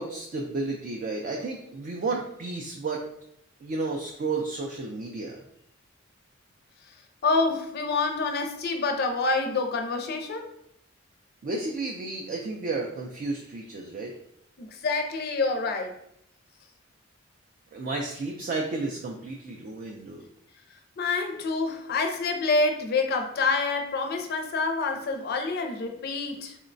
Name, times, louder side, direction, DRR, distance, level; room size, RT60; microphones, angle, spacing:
voice 1, 0.0-3.0 3.6-5.4 11.4-14.1 17.7-20.3, right 3 dB, 45° right, 0 dB, 0.3 m, -32 dB
voice 2, 7.2-10.5 14.6-15.9 21.0-26.6, left 3 dB, 50° left, 4 dB, 0.4 m, -27 dB
3.7 x 2.1 x 2.5 m, 0.74 s
head